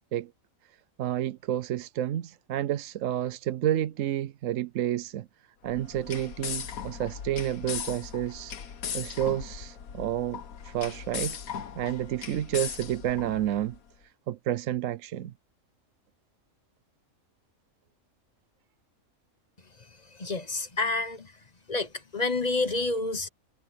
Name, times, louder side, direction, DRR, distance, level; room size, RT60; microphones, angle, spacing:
voice 1, 1.0-5.3 5.6-8.5 8.9-11.4 11.8-13.8 14.3-15.3, right 12 dB, 70° right, 1.0 m, -30 dB
sound 1, 5.6-13.8, left 8 dB, 80° left, 1.5 m, -38 dB
voice 2, 20.2-21.3 21.7-23.3, left 3 dB, 30° left, 1.1 m, -29 dB
omnidirectional pair, 1.5 m